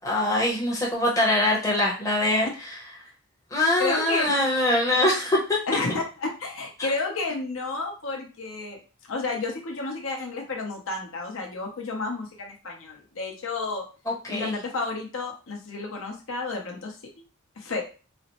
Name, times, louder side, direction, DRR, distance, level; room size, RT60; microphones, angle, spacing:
voice 1, 0.0-2.7 3.5-5.6 14.1-14.5, left 1 dB, 15° left, -3 dB, 0.7 m, -23 dB
voice 2, 3.8-4.4 5.7-8.8 9.1-13.8 14.3-17.0 17.6-17.8, left 3 dB, 70° left, 1 dB, 0.8 m, -31 dB
4.1 x 2.0 x 2.9 m, 0.34 s
head